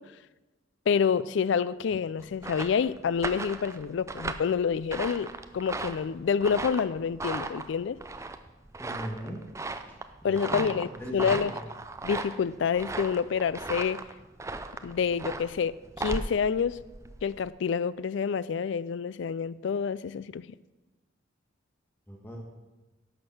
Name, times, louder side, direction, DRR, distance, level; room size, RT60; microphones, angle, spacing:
voice 1, 0.9-8.0 10.2-11.5 12.0-14.0 14.8-16.8 17.2-20.5, left 6 dB, 70° left, 18 dB, 0.3 m, -28 dB
sound 1, 2.2-17.5, right 3 dB, 15° right, 0.4 m, -37 dB
voice 2, 8.8-9.4 10.2-11.6 22.1-22.4, equal, 10° left, -2 dB, 1.4 m, -39 dB
11.5 x 6.6 x 6.0 m, 1.1 s
head